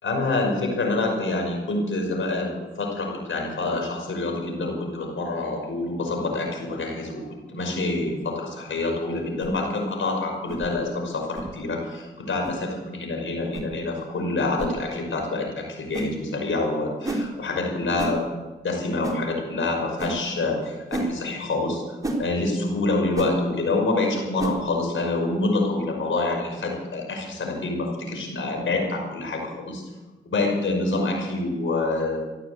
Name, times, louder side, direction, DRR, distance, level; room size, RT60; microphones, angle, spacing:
voice 1, 0.0-7.2 7.5-21.8 22.2-29.8 30.3-32.2, left 2 dB, 65° left, 2 dB, 5.6 m, -26 dB
sound 1, 9.4-9.6 10.5-10.7 11.3-11.5 12.4-12.6 13.5-13.7 14.6-14.7 15.9-16.1 17.0-17.3 18.0-18.2 19.0-19.2 20.0-20.2 20.9-21.1 22.0-22.2 23.1-23.3 24.4-24.6, right 2 dB, 15° right, 3.9 m, -29 dB
15.0 x 11.5 x 8.2 m, 1.2 s
supercardioid pair, 50°, 21 cm